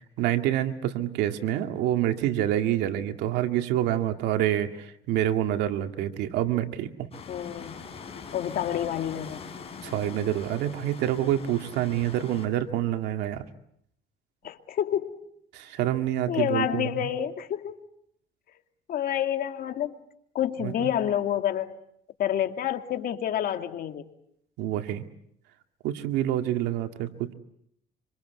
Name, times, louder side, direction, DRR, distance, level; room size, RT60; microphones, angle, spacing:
voice 1, 0.2-7.1 9.8-13.4 15.5-17.1 20.6-20.9 24.6-25.0 25.8-27.3, right 12 dB, 90° right, 6 dB, 2.2 m, -27 dB
sound 1, 7.1-12.5, left 5 dB, 35° left, 6.6 m, -42 dB
voice 2, 7.3-7.7 8.3-9.4 14.4-15.1 16.3-17.7 18.9-19.9 20.3-21.7 22.2-24.0, left 10 dB, 60° left, 7 dB, 2.5 m, -28 dB
26.5 x 26.5 x 8.1 m, 0.74 s
cardioid pair, 110°, 17 cm